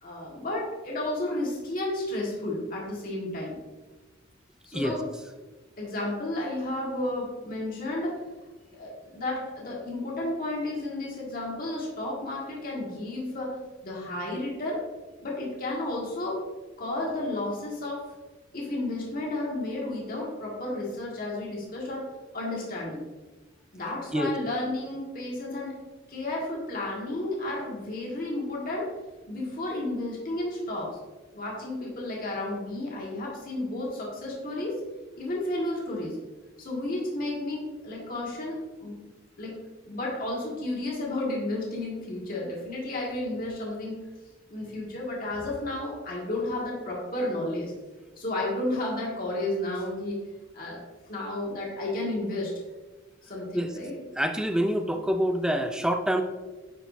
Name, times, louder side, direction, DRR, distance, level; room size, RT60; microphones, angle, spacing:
voice 1, 0.0-3.6 4.7-5.0 5.8-8.2 8.7-13.5 13.8-14.8 15.2-16.4 16.8-18.0 18.5-23.0 23.7-25.8 26.1-28.9 29.3-31.0 31.3-34.8 35.2-36.1 36.6-39.0 39.4-39.6 39.8-44.0 44.5-47.7 48.2-50.2 50.5-52.5 53.2-54.0, left 1 dB, 45° left, -3 dB, 1.7 m, -32 dB
voice 2, 54.2-56.2, equal, 5° right, 6 dB, 0.4 m, -26 dB
9.8 x 4.9 x 2.7 m, 1.2 s
head